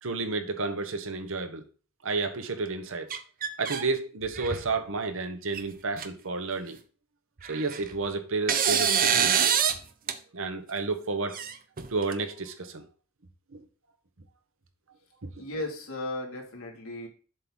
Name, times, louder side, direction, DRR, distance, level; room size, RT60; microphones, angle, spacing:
voice 1, 0.0-1.6 2.0-3.2 3.6-6.8 7.5-9.5 10.3-11.4 11.9-12.9 13.5-13.6 15.2-15.3, right 3 dB, 65° right, 1.1 m, -31 dB
sound 1, 3.1-3.8 4.2-4.7 5.5-5.6 6.0-6.1 7.4-8.0 8.5-9.8 10.1-10.2 11.3-12.1, right 8 dB, 45° right, 0.7 m, -26 dB
voice 2, 15.4-17.1, left 2 dB, 75° left, 2.5 m, -35 dB
7.5 x 3.8 x 6.2 m
head